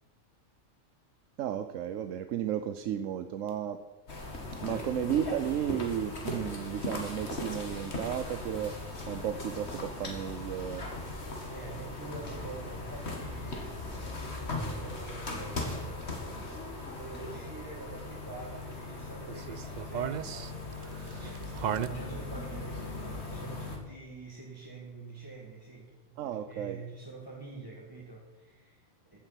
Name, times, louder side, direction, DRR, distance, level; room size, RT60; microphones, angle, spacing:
voice 1, 1.4-3.8 4.6-8.8 9.1-10.8 26.2-26.8, right 10 dB, 85° right, 9 dB, 1.0 m, -33 dB
sound 1, 4.1-23.8, left 2 dB, 60° left, 2.3 m, -39 dB
voice 2, 11.5-16.2 16.9-29.2, right 3 dB, 15° right, -5 dB, 1.9 m, -46 dB
sound 2, 19.3-21.9, right 9 dB, 65° right, 0.4 m, -35 dB
14.5 x 7.9 x 5.8 m, 1.2 s
omnidirectional pair, 1.3 m